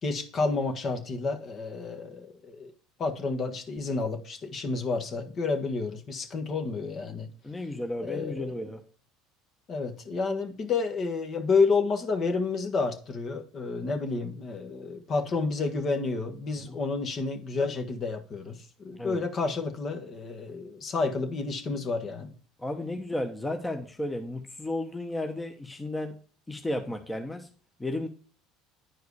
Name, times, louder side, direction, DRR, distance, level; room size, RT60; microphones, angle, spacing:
voice 1, 0.0-2.7 3.0-7.3 8.0-8.4 9.7-22.3, left 4 dB, 45° left, 1.5 m, -30 dB
voice 2, 7.4-8.8 16.7-16.8 18.9-19.2 22.6-26.2 26.5-27.5 27.8-28.1, left 1 dB, 10° left, 1.0 m, -33 dB
9.5 x 4.7 x 4.8 m
supercardioid pair, 85°, 0 cm